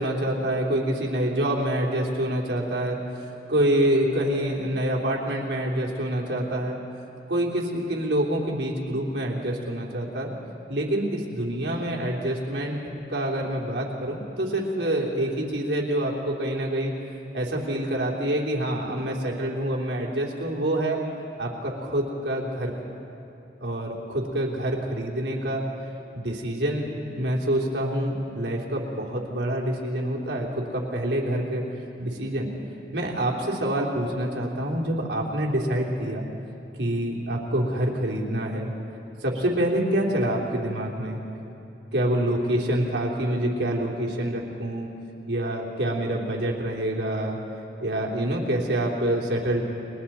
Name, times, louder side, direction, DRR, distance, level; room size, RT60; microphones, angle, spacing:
voice 1, 0.0-3.0 3.5-6.8 7.3-10.3 10.7-12.8 13.1-16.9 17.3-21.0 21.4-22.7 23.6-25.6 26.1-26.9 27.1-31.6 32.0-32.5 32.9-36.2 36.8-38.7 39.2-41.2 41.9-44.9 45.3-47.4 47.8-49.6, right 1 dB, 80° right, -2 dB, 3.2 m, -26 dB
30.0 x 22.0 x 4.3 m, 2.9 s
head